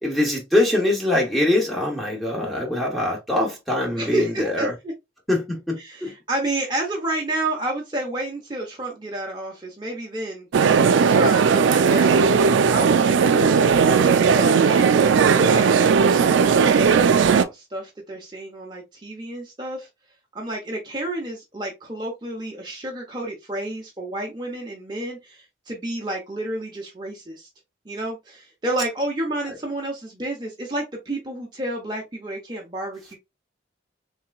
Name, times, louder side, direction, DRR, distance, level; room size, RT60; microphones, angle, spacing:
voice 1, 0.0-4.7 5.3-6.1, left 1 dB, ahead, 0.8 m, -23 dB
voice 2, 4.0-4.9 5.8-14.9 15.4-19.9 20.3-27.5 27.9-33.2, right 1 dB, 25° right, 0.6 m, -30 dB
sound 1, 10.5-17.4, right 6 dB, 90° right, 0.3 m, -17 dB
3.3 x 2.9 x 2.2 m
head